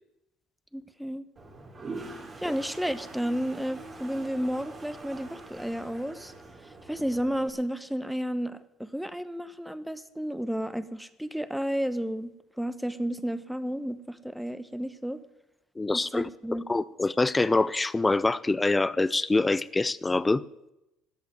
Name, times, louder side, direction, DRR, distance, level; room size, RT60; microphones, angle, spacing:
voice 1, 0.7-1.2 2.4-6.3 6.9-12.3 12.6-15.2 15.9-16.7, equal, ahead, 1.0 m, -32 dB
Toilet flush, 1.4-7.5, right 3 dB, 35° right, 2.9 m, -44 dB
voice 2, 15.8-16.3 16.7-20.4, left 3 dB, 15° left, 0.5 m, -25 dB
13.5 x 8.1 x 9.4 m
supercardioid pair, 90°, 0 cm